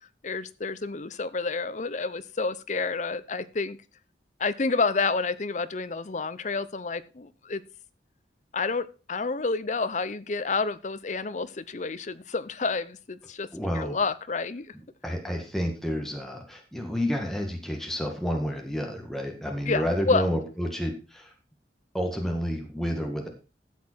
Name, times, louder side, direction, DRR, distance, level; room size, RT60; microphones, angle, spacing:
voice 1, 0.2-3.8 4.4-7.6 8.5-13.5 13.7-14.7 19.7-20.3, left 4 dB, 45° left, 14 dB, 0.7 m, -29 dB
voice 2, 13.5-14.0 15.0-21.3 21.9-23.3, equal, ahead, 2 dB, 1.8 m, -30 dB
12.5 x 7.7 x 4.5 m, 0.33 s
head